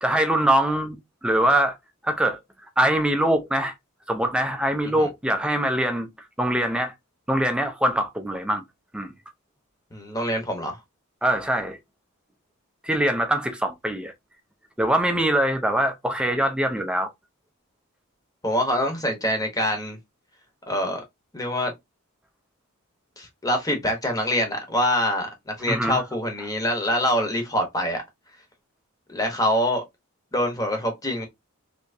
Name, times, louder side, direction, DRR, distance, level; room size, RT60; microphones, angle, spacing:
voice 1, 0.0-1.0 1.2-1.8 2.0-2.4 2.8-3.7 4.1-6.1 6.4-6.9 7.3-8.6 8.9-9.1 11.2-11.8 12.8-14.1 14.8-17.1 25.6-26.0, right 1 dB, 5° right, 0.5 m, -23 dB
voice 2, 9.9-10.8 18.4-20.0 20.7-21.0 21.3-21.7 23.2-28.0 29.1-29.8 30.3-31.2, left 1 dB, 15° left, 0.9 m, -25 dB
3.3 x 2.9 x 2.6 m
head